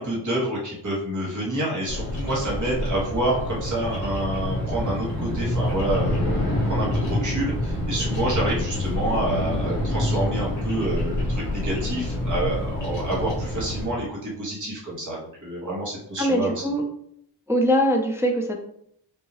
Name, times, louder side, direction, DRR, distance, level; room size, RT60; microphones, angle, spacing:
voice 1, 0.0-16.5, right 1 dB, 45° right, -5 dB, 1.4 m, -28 dB
Bird vocalization bird call bird song, 1.9-13.9, left 1 dB, 40° left, 1.4 m, -27 dB
voice 2, 16.2-16.8 17.5-18.6, equal, 5° right, 1 dB, 0.4 m, -22 dB
5.5 x 2.7 x 2.9 m, 0.71 s
wide cardioid pair, 175°, 43 cm